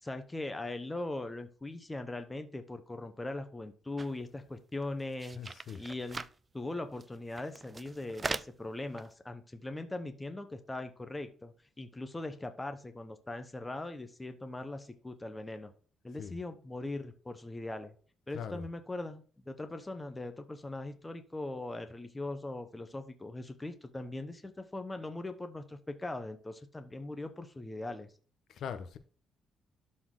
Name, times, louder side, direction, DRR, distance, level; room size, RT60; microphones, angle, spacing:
voice 1, 0.0-5.4 5.7-6.3 6.5-15.7 16.0-17.9 18.3-28.1, left 2 dB, 10° left, 0.8 m, -40 dB
sound 1, 4.0-4.1 4.5-4.6 4.8-6.4 7.0-7.1 7.3-8.6 9.0-9.1, right 3 dB, 20° right, 0.4 m, -40 dB
voice 2, 5.4-5.8 16.2-16.4 18.3-18.6 28.5-29.0, left 7 dB, 65° left, 0.9 m, -41 dB
12.0 x 4.3 x 3.7 m
cardioid pair, 160°, 0 cm